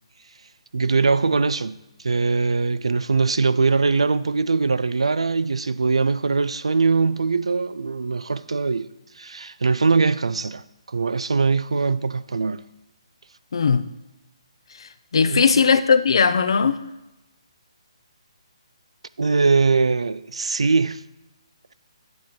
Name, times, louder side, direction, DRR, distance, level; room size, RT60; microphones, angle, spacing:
voice 1, 0.7-8.9 9.2-10.6 10.9-12.6 15.3-15.4 19.2-21.0, right 4 dB, 70° right, 0.4 m, -21 dB
voice 2, 13.5-13.8 14.8-16.8, left 5 dB, 55° left, 0.5 m, -18 dB
8.5 x 7.8 x 3.7 m
figure-of-eight pair, 140°, 3 cm